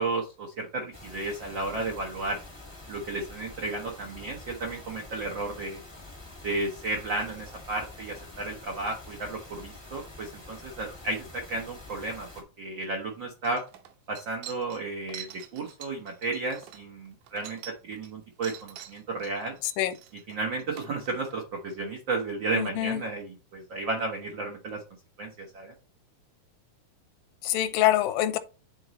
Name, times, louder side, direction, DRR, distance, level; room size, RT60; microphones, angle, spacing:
voice 1, 0.0-2.4 2.9-5.8 6.4-13.6 14.1-19.5 20.3-24.8 25.2-25.7, right 2 dB, 90° right, 1.0 m, -33 dB
sound 1, 0.9-12.4, left 2 dB, 25° left, 0.5 m, -47 dB
sound 2, 13.0-13.1 13.4-18.1 18.4-21.4, right 11 dB, 70° right, 2.1 m, -46 dB
voice 2, 19.6-20.0 22.5-23.0 27.4-28.4, left 13 dB, 80° left, 2.3 m, -25 dB
10.5 x 4.0 x 3.1 m
omnidirectional pair, 4.1 m